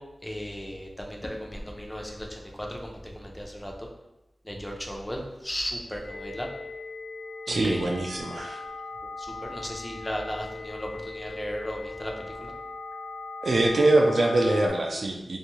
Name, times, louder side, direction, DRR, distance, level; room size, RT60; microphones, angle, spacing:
voice 1, 0.2-2.3 2.6-3.9 4.5-6.5 7.5-7.9 9.3-10.9 11.1-12.5, equal, 15° left, 0 dB, 0.4 m, -35 dB
sound 1, 6.0-14.7, left 3 dB, 70° left, 0.8 m, -39 dB
voice 2, 7.5-8.6 13.4-15.4, right 2 dB, 65° right, 0 dB, 0.3 m, -23 dB
2.5 x 2.3 x 3.0 m, 0.94 s
wide cardioid pair, 85°, 0 cm